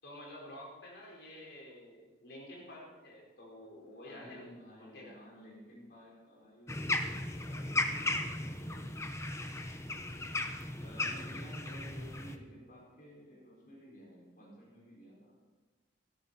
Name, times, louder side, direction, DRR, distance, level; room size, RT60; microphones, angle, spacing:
voice 1, 0.0-4.5 4.8-5.2, left 1 dB, 65° left, -2 dB, 5.0 m, -50 dB
voice 2, 4.0-8.9 10.8-15.4, equal, 45° left, -5 dB, 5.7 m, -54 dB
sound 1, 6.7-12.4, left 2 dB, 15° left, 0.9 m, -36 dB
17.5 x 13.5 x 4.4 m, 1.4 s
head